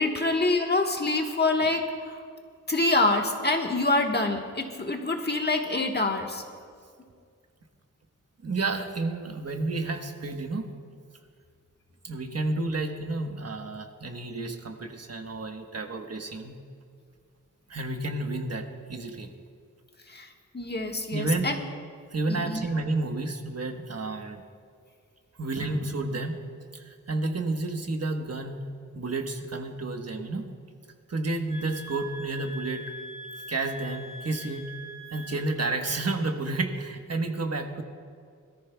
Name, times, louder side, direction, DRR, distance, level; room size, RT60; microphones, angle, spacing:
voice 1, 0.0-2.2 2.7-6.4 20.1-20.3 20.5-21.6 22.3-22.6, left 2 dB, 30° left, 2 dB, 1.4 m, -26 dB
voice 2, 8.4-10.7 12.0-16.5 17.7-19.3 21.1-21.5 22.1-24.4 25.4-26.4 26.7-28.7 28.9-30.5 31.1-32.9 33.5-34.7 35.1-37.8, right 2 dB, 50° right, 4 dB, 1.2 m, -31 dB
sound 1, 31.5-35.8, equal, 75° left, 1.2 m, -43 dB
22.0 x 14.0 x 2.3 m, 2.2 s
wide cardioid pair, 75°, 32 cm